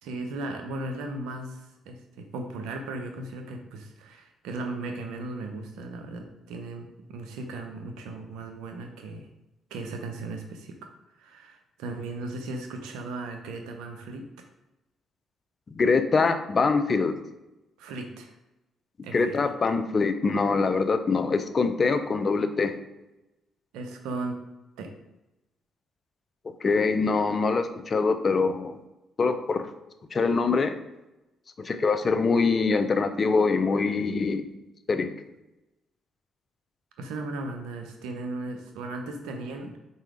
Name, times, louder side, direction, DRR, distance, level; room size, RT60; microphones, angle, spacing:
voice 1, 0.0-9.3 9.7-10.9 11.2-14.3 17.8-18.3 19.0-19.5 23.7-24.4 24.8-24.9 27.3-27.4 37.0-39.8, right 2 dB, 85° right, 5 dB, 0.8 m, -36 dB
voice 2, 15.8-17.1 19.1-22.8 26.6-28.8 29.2-29.7 30.1-30.7 31.6-34.5 34.9-35.1, left 4 dB, 45° left, 9 dB, 0.6 m, -24 dB
4.6 x 4.2 x 4.9 m, 0.97 s
supercardioid pair, 60°, 0 cm